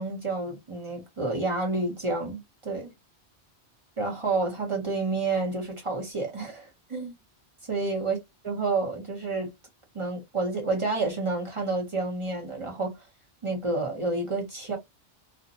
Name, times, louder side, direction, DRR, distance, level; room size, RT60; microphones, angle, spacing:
voice 1, 0.0-2.9 4.0-7.1 7.7-8.2 8.4-9.5 9.9-12.9 13.4-14.8, right 3 dB, 35° right, 0.7 m, -29 dB
2.5 x 2.0 x 2.6 m
omnidirectional pair, 1.1 m